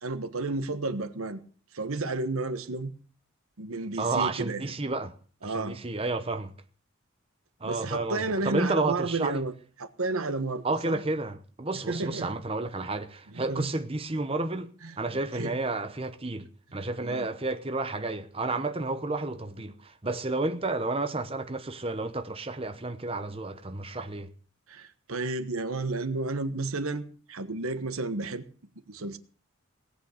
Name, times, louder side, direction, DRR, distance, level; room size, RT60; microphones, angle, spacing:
voice 1, 0.0-1.4 1.7-2.9 3.6-4.6 5.4-5.8 7.6-9.5 9.8-11.0 11.9-12.3 13.3-13.7 14.8-15.5 17.0-17.3 24.7-28.5 28.9-29.2, right 3 dB, 90° right, 1.3 m, -32 dB
voice 2, 4.0-5.1 5.4-6.5 7.6-9.4 10.6-14.7 15.0-24.3, right 2 dB, 25° right, 0.9 m, -31 dB
18.5 x 8.5 x 6.5 m
head